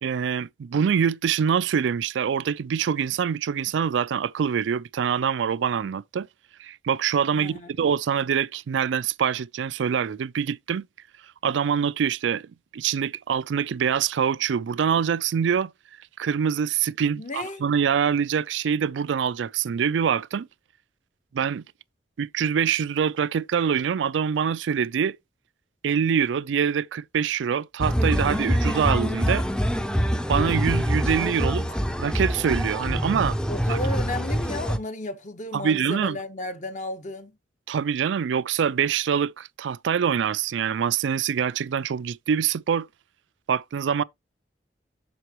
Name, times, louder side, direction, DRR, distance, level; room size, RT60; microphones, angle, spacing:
voice 1, 0.0-6.3 6.6-10.9 11.4-15.7 16.2-20.5 21.3-21.6 22.2-25.2 25.8-29.4 30.3-33.4 33.7-33.8 35.5-36.2 37.7-42.9 43.5-44.0, right 7 dB, 85° right, 0.4 m, -25 dB
voice 2, 7.3-7.7 17.1-17.6 33.5-37.3, left 2 dB, 40° left, 0.9 m, -33 dB
sound 1, 27.8-34.8, equal, 5° left, 0.5 m, -25 dB
7.8 x 6.7 x 2.9 m
head